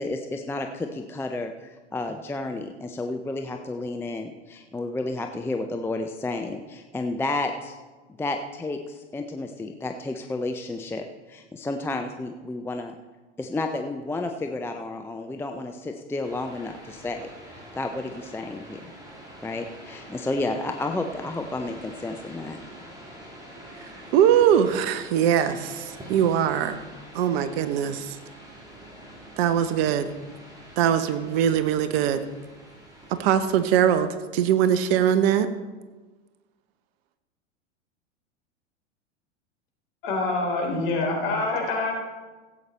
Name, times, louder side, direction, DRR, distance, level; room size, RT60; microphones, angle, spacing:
voice 1, 0.0-7.7 8.2-12.9 13.4-18.8 19.4-22.6, left 2 dB, 5° left, 5 dB, 0.5 m, -31 dB
sound 1, 16.2-34.0, right 1 dB, 10° right, 3.6 m, -46 dB
voice 2, 24.1-26.8 27.1-28.2 29.4-30.1 30.8-32.2 33.2-35.5, right 9 dB, 55° right, 11 dB, 1.0 m, -21 dB
voice 3, 40.0-41.9, left 2 dB, 55° left, 1 dB, 3.8 m, -26 dB
15.5 x 8.3 x 4.3 m, 1.3 s
hypercardioid pair, 95°, 37 cm